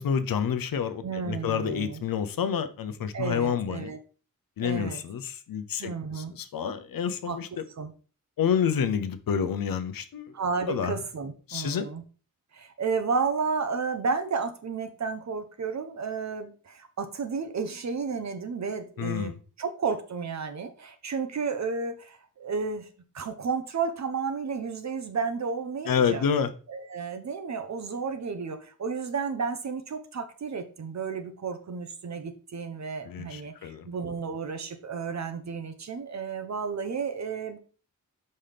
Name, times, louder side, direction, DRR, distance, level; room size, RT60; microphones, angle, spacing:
voice 1, 0.0-3.9 4.6-7.6 8.4-10.3 10.7-10.9 11.5-11.9 19.0-19.4 25.9-26.5 33.0-33.9, left 7 dB, 80° left, 0.7 m, -28 dB
voice 2, 1.0-2.0 3.1-4.0 4.6-5.0 5.8-6.3 7.3-7.4 7.8-7.9 10.3-12.0 12.5-19.3 19.6-22.9 23.1-26.2 26.7-37.6, right 5 dB, 55° right, 0.8 m, -32 dB
5.7 x 5.3 x 3.3 m
wide cardioid pair, 145°, 34 cm